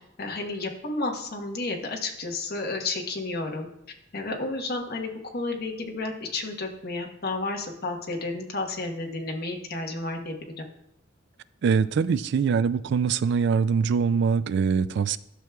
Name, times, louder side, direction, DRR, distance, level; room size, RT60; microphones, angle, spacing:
voice 1, 0.2-3.7 4.1-10.3, left 2 dB, 55° left, 2 dB, 1.1 m, -31 dB
voice 2, 11.6-15.2, right 6 dB, 60° right, 16 dB, 0.3 m, -23 dB
12.0 x 6.1 x 2.3 m, 0.83 s
head